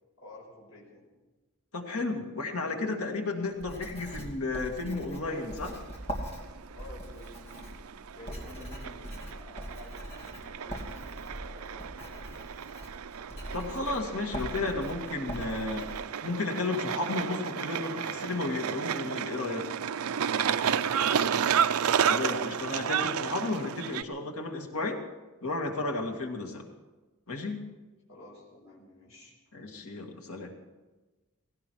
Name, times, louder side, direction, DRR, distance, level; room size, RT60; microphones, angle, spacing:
voice 1, 0.2-1.1 6.7-7.8 8.1-12.4 20.4-21.4 28.1-29.3, left 1 dB, 65° left, -3 dB, 4.9 m, -51 dB
voice 2, 1.7-5.8 13.5-15.9 16.2-19.7 22.1-25.0 25.4-26.7 27.3-27.6 29.5-30.5, left 2 dB, 90° left, 3 dB, 2.2 m, -33 dB
Writing, 3.6-16.0, right 1 dB, 30° left, 2.7 m, -42 dB
sound 1, 5.3-24.0, right 8 dB, 85° right, 0.5 m, -32 dB
18.5 x 17.0 x 4.7 m, 1.2 s
head